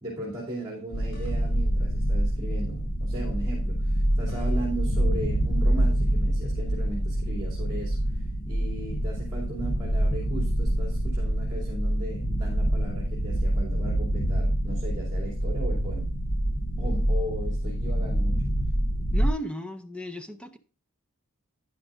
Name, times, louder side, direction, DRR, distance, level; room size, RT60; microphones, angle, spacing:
voice 1, 0.0-16.0 16.8-18.4, right 1 dB, 20° right, -4 dB, 2.8 m, -37 dB
sound 1, 0.9-1.8 3.8-5.0, right 1 dB, 75° left, 4.4 m, -52 dB
sound 2, 0.9-19.3, right 1 dB, 40° left, 0.9 m, -26 dB
voice 2, 19.1-20.6, equal, 5° left, 9 dB, 0.6 m, -35 dB
11.0 x 9.9 x 2.5 m, 0.35 s
head